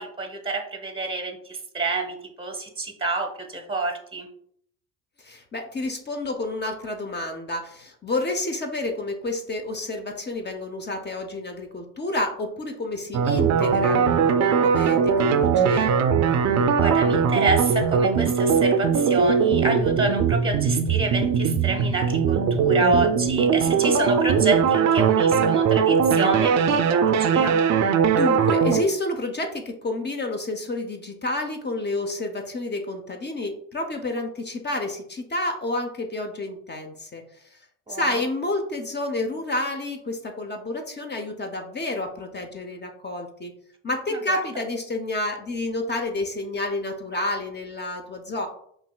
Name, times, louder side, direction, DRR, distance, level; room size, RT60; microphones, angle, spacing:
voice 1, 0.0-4.3 16.8-26.5 26.9-27.6 37.9-38.2 44.1-44.4, right 3 dB, 15° right, 4 dB, 0.8 m, -28 dB
voice 2, 5.2-16.0 27.2-27.5 28.1-37.2 37.5-37.6 37.9-43.5 43.8-48.5, left 2 dB, 25° left, 4 dB, 0.7 m, -30 dB
sound 1, 13.1-28.8, right 6 dB, 45° right, 0.5 m, -20 dB
5.6 x 2.5 x 2.3 m, 0.66 s
hypercardioid pair, 55°, 39 cm